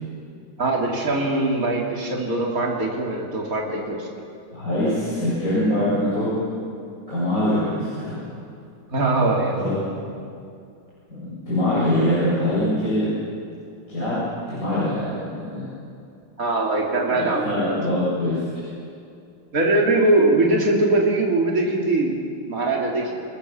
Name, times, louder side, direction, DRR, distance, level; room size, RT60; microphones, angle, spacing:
voice 1, 0.6-4.1 8.9-9.7 16.4-17.8 19.5-22.2 22.5-23.1, right 2 dB, 45° right, -2 dB, 3.5 m, -21 dB
voice 2, 4.5-6.3 7.1-8.2 9.6-9.8 11.1-13.1 13.9-14.2 14.5-15.7 17.1-18.4, left 1 dB, 45° left, -10 dB, 8.4 m, -23 dB
29.5 x 19.0 x 7.3 m, 2.5 s
omnidirectional pair, 2.0 m